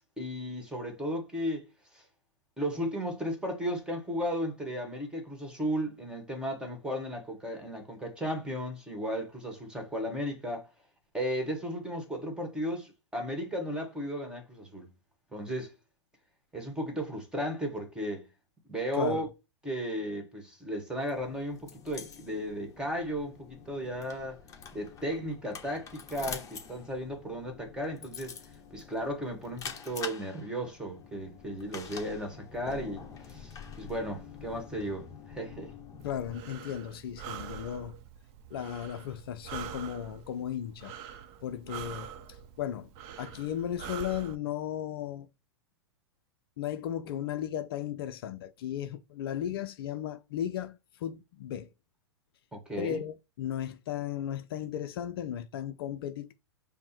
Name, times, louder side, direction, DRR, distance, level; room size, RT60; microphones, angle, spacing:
voice 1, 0.2-1.7 1.9-2.0 2.6-10.7 11.1-14.9 15.3-15.7 16.5-18.3 18.7-19.3 19.6-24.4 24.7-28.3 28.7-35.7 52.5-53.0, equal, 5° right, 1.6 m, -35 dB
voice 2, 18.9-19.3 36.0-37.9 38.5-40.9 41.4-42.9 43.2-45.3 46.6-51.7 52.8-56.3, left 10 dB, 55° left, 0.5 m, -35 dB
sound 1, 21.0-36.4, left 6 dB, 20° left, 1.0 m, -46 dB
Breathing, 36.0-44.3, right 8 dB, 40° right, 0.7 m, -44 dB
5.2 x 2.1 x 4.3 m
figure-of-eight pair, 105°, 15 cm